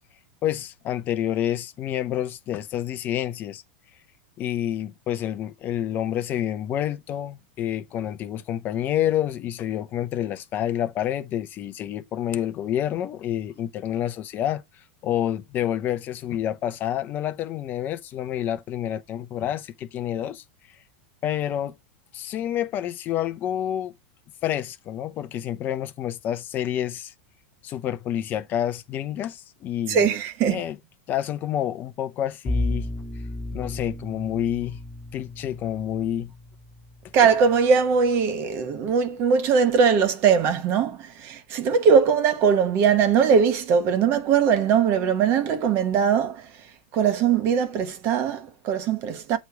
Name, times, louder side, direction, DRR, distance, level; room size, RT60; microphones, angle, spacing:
voice 1, 0.4-3.6 4.4-14.6 15.0-20.4 21.2-21.7 22.1-23.9 24.4-27.1 27.6-30.1 30.4-30.8 31.1-32.9 33.5-34.8 35.1-36.3, left 11 dB, 30° left, 0.6 m, -28 dB
voice 2, 29.9-30.6 37.1-46.5 46.9-49.4, right 6 dB, 40° right, 1.1 m, -21 dB
Bowed string instrument, 32.4-37.5, left 1 dB, 5° left, 1.1 m, -33 dB
8.2 x 3.1 x 4.7 m
supercardioid pair, 140°, 6 cm